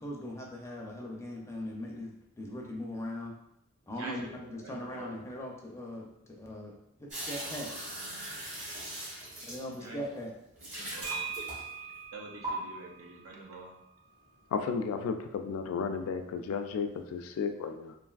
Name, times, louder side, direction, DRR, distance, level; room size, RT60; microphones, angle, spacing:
voice 1, 0.0-3.3 3.9-7.7 9.5-10.3, left 1 dB, 15° left, -1 dB, 0.4 m, -40 dB
voice 2, 4.0-4.3 4.6-5.1 9.8-10.0 10.7-11.3 12.1-13.7, right 2 dB, 75° right, 0 dB, 0.6 m, -45 dB
sound 1, 7.1-10.0 10.6-11.9 12.4-12.5, right 1 dB, 35° right, 1.1 m, -40 dB
sound 2, 11.0-14.8, right 6 dB, 55° right, 1.5 m, -43 dB
voice 3, 14.5-18.0, left 5 dB, 70° left, 7 dB, 0.3 m, -33 dB
3.2 x 2.5 x 2.3 m, 0.80 s
head